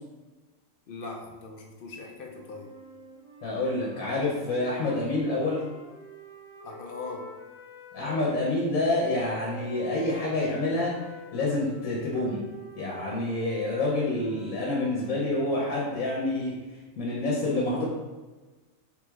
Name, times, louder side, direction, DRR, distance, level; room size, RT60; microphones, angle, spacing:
voice 1, 0.9-2.8 6.6-7.3, left 3 dB, 60° left, 1 dB, 0.6 m, -40 dB
sound 1, 2.3-8.5 9.2-16.3, left 1 dB, 30° right, 1.3 m, -47 dB
voice 2, 3.4-5.6 7.9-10.9 11.3-12.4 12.8-16.5 17.0-17.8, left 2 dB, 80° left, -4 dB, 1.2 m, -27 dB
4.6 x 3.8 x 2.3 m, 1.2 s
omnidirectional pair, 1.4 m